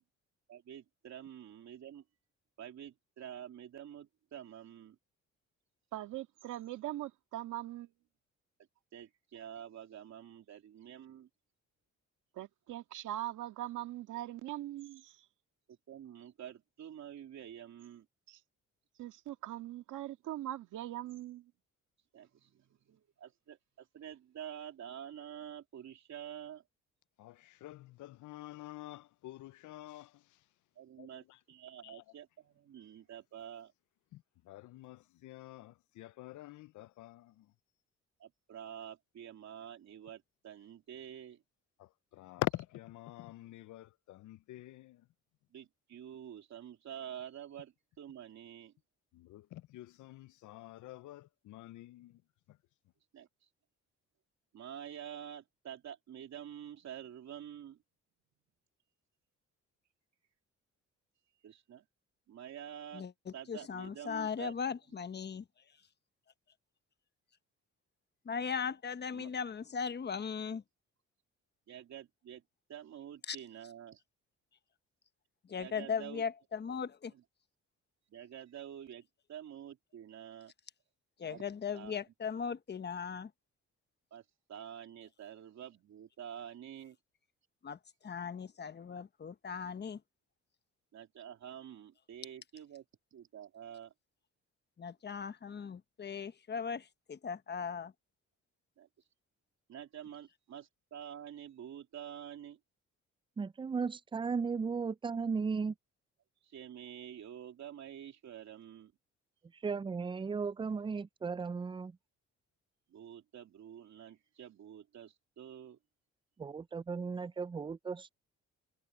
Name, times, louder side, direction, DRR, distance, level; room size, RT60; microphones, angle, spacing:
voice 1, 0.5-2.0 2.6-5.0 8.9-11.3 15.7-18.1 22.1-26.6 30.8-33.7 38.2-41.4 45.5-48.7 53.1-53.5 54.5-57.8 61.4-61.8 62.3-63.0 63.3-64.5 69.1-69.3 71.7-72.4 72.7-74.0 75.6-76.2 77.1-77.2 78.1-80.5 81.3-81.4 81.7-82.0 84.1-87.0 90.9-92.8 93.1-93.9 98.8-98.9 99.7-102.6 106.4-108.9 112.9-115.8, right 9 dB, 65° right, 3.0 m, -48 dB
voice 2, 5.9-7.9 12.4-15.2 18.3-18.4 19.0-21.5, right 14 dB, 85° right, 2.0 m, -41 dB
voice 3, 27.6-30.0 34.5-35.0 35.2-35.7 36.0-37.1 42.2-43.8 44.2-44.8 49.3-49.4 49.7-51.2 51.5-52.1, left 16 dB, 80° left, 0.6 m, -44 dB
voice 4, 63.5-65.4 68.2-70.6 73.3-73.4 75.5-77.1 81.2-83.3 87.6-90.0 94.8-97.9, left 6 dB, 35° left, 1.1 m, -38 dB
voice 5, 103.4-105.7 109.6-112.0 116.4-118.1, right 5 dB, 15° right, 0.4 m, -36 dB
cardioid pair, 90°, 30 cm